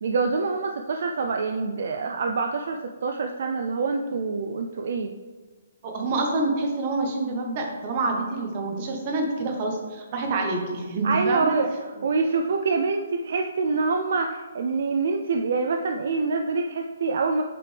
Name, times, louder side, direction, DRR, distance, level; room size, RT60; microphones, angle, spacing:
voice 1, 0.0-5.1 11.0-11.7 12.0-17.4, right 4 dB, 55° right, 4 dB, 0.4 m, -26 dB
voice 2, 5.8-11.6, right 2 dB, 30° right, 2 dB, 1.1 m, -27 dB
7.6 x 5.0 x 3.4 m, 1.4 s
hypercardioid pair, 165°, 0 cm